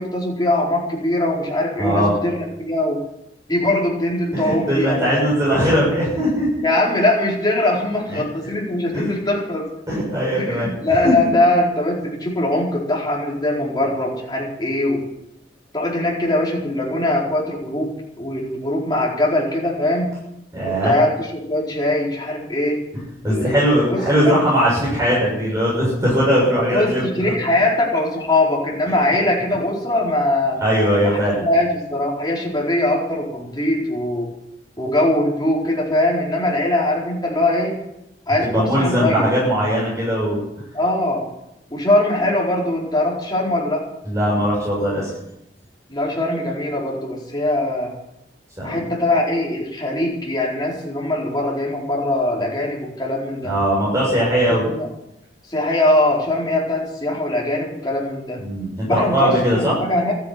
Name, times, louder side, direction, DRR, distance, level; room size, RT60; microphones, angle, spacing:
voice 1, 0.0-3.0 3.5-5.1 6.6-9.6 10.3-15.0 15.7-20.1 20.6-22.8 23.3-23.6 23.9-24.0 24.2-24.4 26.7-30.6 31.0-34.3 34.8-37.8 38.3-39.3 40.7-41.3 41.7-43.9 45.9-47.9 48.6-53.5 54.5-54.9 55.5-58.4 58.8-60.1, left 1 dB, 25° left, -4 dB, 4.7 m, -21 dB
voice 2, 1.8-2.1 4.3-6.6 8.1-8.2 8.9-9.0 9.9-10.7 11.0-11.3 20.5-20.9 23.2-27.0 30.6-31.4 38.5-40.4 44.0-45.1 48.6-48.8 53.4-54.7 58.4-59.8, equal, 20° right, -6 dB, 6.9 m, -19 dB
13.5 x 10.5 x 9.5 m, 0.86 s
head